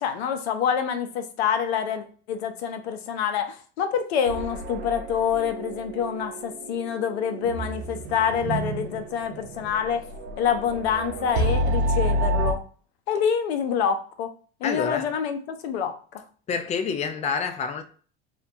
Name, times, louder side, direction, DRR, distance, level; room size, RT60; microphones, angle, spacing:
voice 1, 0.0-10.0 10.4-12.6 13.1-14.3 14.6-15.9, left 7 dB, 80° left, 0.6 m, -26 dB
sound 1, 4.2-12.5, right 1 dB, 90° right, 0.6 m, -29 dB
voice 2, 14.6-15.2 16.5-17.8, left 6 dB, 20° left, 0.4 m, -28 dB
2.8 x 2.2 x 2.6 m
hypercardioid pair, 80°, 31 cm